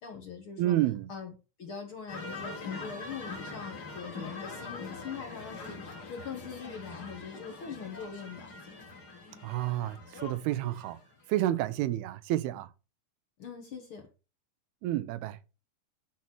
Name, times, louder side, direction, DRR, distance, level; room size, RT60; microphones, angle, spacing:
voice 1, 0.0-0.8 1.1-1.3 1.6-8.5 13.4-14.1, left 6 dB, 55° left, 1.5 m, -42 dB
voice 2, 0.6-1.1 9.4-11.0 11.3-12.7 14.8-15.4, right 14 dB, 90° right, 2.7 m, -30 dB
sound 1, 2.1-11.1, left 3 dB, 35° left, 1.8 m, -43 dB
10.5 x 4.3 x 6.1 m
omnidirectional pair, 4.4 m